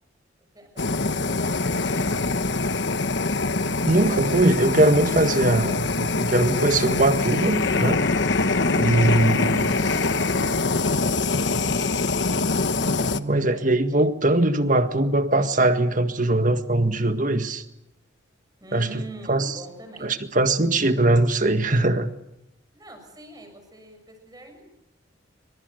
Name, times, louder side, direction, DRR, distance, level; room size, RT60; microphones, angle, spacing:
voice 1, 0.5-2.8 8.6-12.1 18.6-20.1 22.7-24.7, right 2 dB, 20° right, 5 dB, 7.0 m, -46 dB
Fire, 0.8-13.2, left 3 dB, 65° left, 1.2 m, -24 dB
voice 2, 3.8-8.0 8.8-9.7 13.1-17.6 18.7-19.0 19.3-19.6 20.0-22.1, right 2 dB, 40° right, 8 dB, 1.8 m, -21 dB
27.0 x 25.0 x 6.7 m, 0.89 s
head